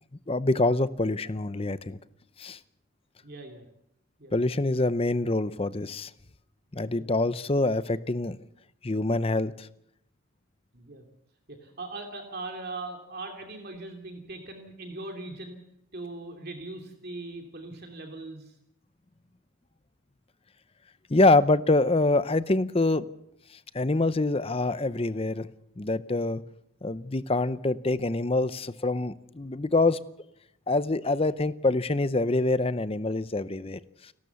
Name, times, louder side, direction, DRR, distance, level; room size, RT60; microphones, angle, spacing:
voice 1, 0.3-2.0 2.4-2.6 4.3-6.1 6.7-8.4 8.8-9.7 21.1-23.0 23.7-25.5 25.8-26.4 26.8-30.0 30.7-34.1, left 2 dB, 25° left, 15 dB, 0.7 m, -25 dB
voice 2, 3.2-3.7 4.2-4.3 6.9-7.6 10.7-11.1 11.5-15.6 15.9-18.5, right 2 dB, 50° right, 3 dB, 2.7 m, -40 dB
29.5 x 13.0 x 7.0 m, 0.79 s
head